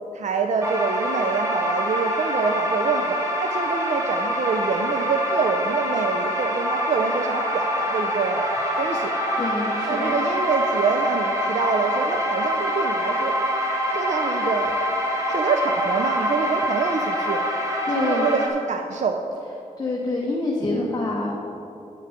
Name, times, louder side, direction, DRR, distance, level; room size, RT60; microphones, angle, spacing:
voice 1, 0.1-9.1 9.9-13.3 13.9-14.7 15.3-17.4 17.9-19.2 20.7-20.9, right 5 dB, 60° right, 4 dB, 0.5 m, -26 dB
sound 1, 0.6-18.5, equal, 20° right, 1.5 m, -25 dB
voice 2, 9.4-10.2 17.8-18.3 19.8-21.3, left 2 dB, 30° left, -3 dB, 1.1 m, -26 dB
9.4 x 6.6 x 5.0 m, 2.8 s
wide cardioid pair, 90°, 14 cm